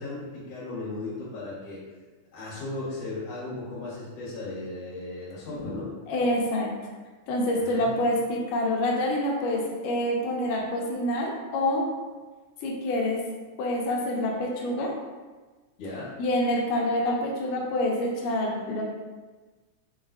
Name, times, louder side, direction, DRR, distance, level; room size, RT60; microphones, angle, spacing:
voice 1, 0.0-1.8 2.3-5.9 7.6-8.0 15.8-16.1, left 2 dB, 55° left, -8 dB, 2.4 m, -36 dB
voice 2, 6.1-6.7 7.3-11.9 12.6-13.2 13.6-15.0 16.2-18.8, left 1 dB, 90° left, -1 dB, 2.2 m, -27 dB
5.2 x 3.9 x 2.5 m, 1.3 s
omnidirectional pair, 3.8 m